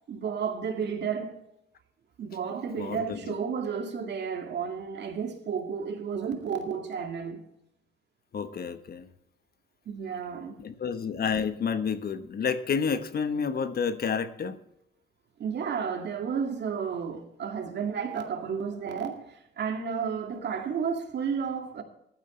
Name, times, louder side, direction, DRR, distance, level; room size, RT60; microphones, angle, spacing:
voice 1, 0.1-1.4 2.2-7.4 9.9-10.6 15.4-21.8, right 6 dB, 60° right, 2.2 m, -32 dB
voice 2, 2.8-3.3 8.3-9.1 10.6-14.6, left 6 dB, 50° left, 1.1 m, -30 dB
15.0 x 12.0 x 3.2 m
cardioid pair, 90°, 20 cm